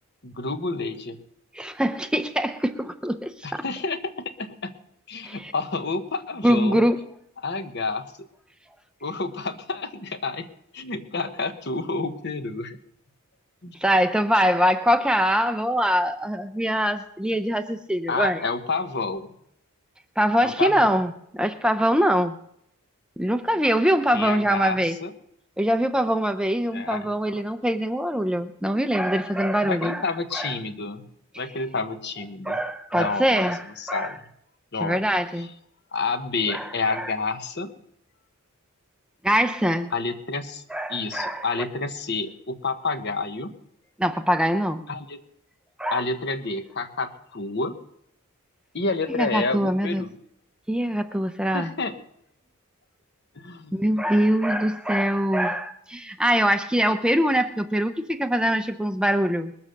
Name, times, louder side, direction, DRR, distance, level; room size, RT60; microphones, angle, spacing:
voice 1, 0.2-1.2 3.4-4.1 4.4-4.7 5.1-6.8 7.4-8.1 9.0-10.5 10.7-12.8 13.6-13.8 18.1-19.3 20.4-20.9 24.1-25.1 26.7-27.1 29.6-31.1 31.4-32.6 32.9-33.5 33.8-34.2 34.7-35.0 35.4-35.5 35.9-37.7 39.9-40.6 40.9-43.6 44.9-45.2 45.9-47.8 48.7-50.1 51.5-51.9 53.4-53.8, left 3 dB, 50° left, 9 dB, 1.0 m, -29 dB
voice 2, 1.5-3.6 5.2-5.5 6.4-7.0 13.8-18.4 20.2-22.4 23.2-25.0 25.6-30.0 30.3-30.5 32.4-34.1 34.8-35.5 36.5-37.1 39.2-39.9 40.7-41.5 44.0-44.8 45.8-46.0 49.2-50.1 50.7-51.7 53.7-59.5, equal, 5° right, 8 dB, 0.5 m, -23 dB
21.0 x 7.3 x 6.6 m, 0.75 s
head